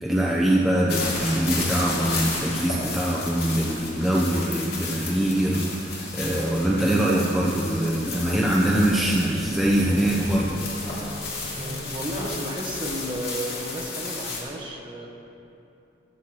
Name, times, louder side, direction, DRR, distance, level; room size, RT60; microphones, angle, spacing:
voice 1, 0.0-10.6, right 1 dB, ahead, -5 dB, 0.7 m, -23 dB
sound 1, 0.9-14.4, left 3 dB, 55° left, 2.7 m, -33 dB
sound 2, 7.7-13.0, equal, 60° right, 2.1 m, -40 dB
voice 2, 11.6-15.1, equal, 25° right, -1 dB, 1.3 m, -33 dB
13.5 x 13.5 x 3.0 m, 2.8 s
head